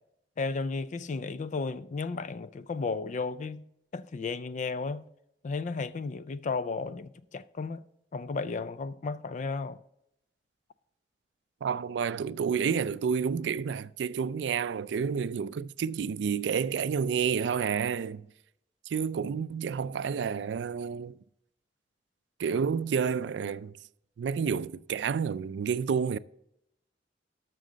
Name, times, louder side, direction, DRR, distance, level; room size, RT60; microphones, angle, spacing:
voice 1, 0.4-3.6 3.9-5.0 5.4-7.8 8.1-9.8, left 4 dB, 40° left, 0.3 m, -34 dB
voice 2, 11.6-18.3 18.9-21.2 22.4-23.7 24.2-26.2, right 6 dB, 75° right, 0.3 m, -30 dB
12.5 x 6.4 x 3.9 m
head